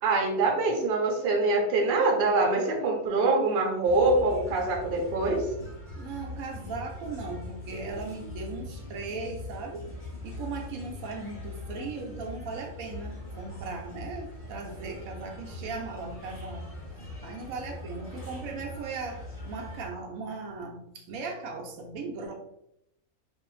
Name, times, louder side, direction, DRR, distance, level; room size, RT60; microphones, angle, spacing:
voice 1, 0.0-5.4, right 3 dB, 55° right, 0 dB, 0.7 m, -24 dB
sound 1, 3.8-19.9, left 2 dB, 10° left, 0.6 m, -41 dB
voice 2, 6.0-9.9 10.2-16.6 17.2-22.3, right 4 dB, 80° right, 1 dB, 1.0 m, -38 dB
2.6 x 2.0 x 3.0 m, 0.78 s
omnidirectional pair, 1.4 m